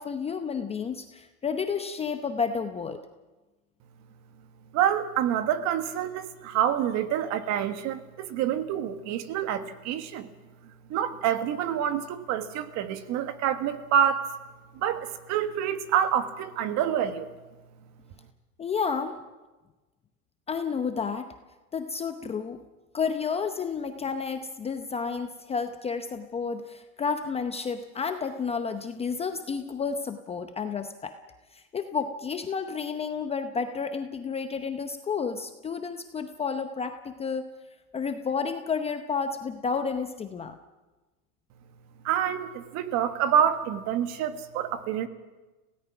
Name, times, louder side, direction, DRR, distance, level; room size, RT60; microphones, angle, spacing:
voice 1, 0.0-3.0 18.6-19.2 20.5-21.4 21.7-22.6 22.9-31.2 31.5-37.5 37.9-40.6, left 5 dB, 15° left, 7 dB, 0.8 m, -31 dB
voice 2, 4.7-10.3 10.9-14.3 14.7-17.3 42.0-45.1, right 9 dB, 40° right, 10 dB, 1.5 m, -27 dB
26.5 x 17.5 x 6.0 m, 1.2 s
supercardioid pair, 135°, 44 cm